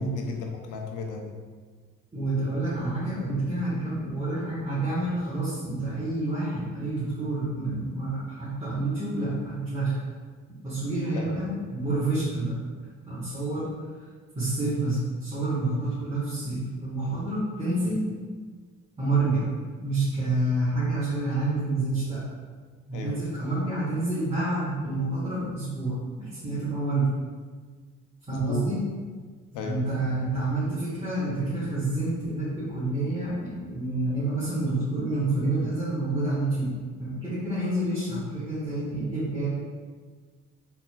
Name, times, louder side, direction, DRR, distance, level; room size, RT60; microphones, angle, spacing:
voice 1, 0.0-1.4 11.1-11.4 22.9-23.2 28.3-28.7 29.5-29.8, left 4 dB, 85° left, 2 dB, 0.7 m, -34 dB
voice 2, 2.1-10.0 10.6-12.6 13.1-13.7 14.3-18.1 19.0-19.5 19.8-22.2 22.9-27.2 28.3-28.8 29.6-39.5, right 2 dB, 20° right, -10 dB, 1.4 m, -28 dB
4.3 x 4.1 x 2.3 m, 1.5 s
cardioid pair, 90°, 30 cm